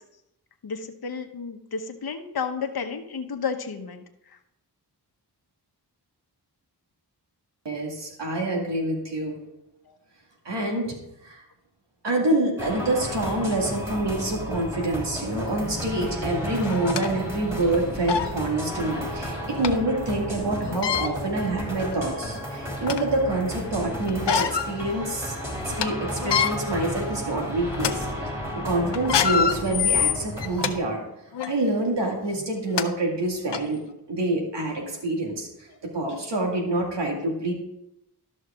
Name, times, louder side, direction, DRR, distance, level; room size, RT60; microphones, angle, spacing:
voice 1, 0.6-4.0 9.9-10.0, left 5 dB, 60° left, 5 dB, 1.0 m, -32 dB
voice 2, 7.6-9.4 10.5-10.9 11.2-11.4 12.0-25.4 25.6-31.0 31.5-33.8 34.1-35.7 35.9-37.5, right 2 dB, 80° right, 0 dB, 2.2 m, -27 dB
sound 1, 12.6-30.8, equal, 5° right, 2.9 m, -33 dB
sound 2, 15.9-16.0 16.6-17.1 17.7-17.8 18.1-18.3 19.6-19.7 20.7-21.1 21.9-22.0 22.4-23.1 24.1-24.7 25.1-25.2 25.6-25.9 26.2-26.5 27.1-27.3 27.7-27.9 28.9-30.7 31.3-31.5 32.4-32.5 32.8-32.9 33.5-33.6, left 8 dB, 85° left, 0.7 m, -25 dB
12.0 x 6.3 x 3.6 m, 0.85 s
wide cardioid pair, 65°, 41 cm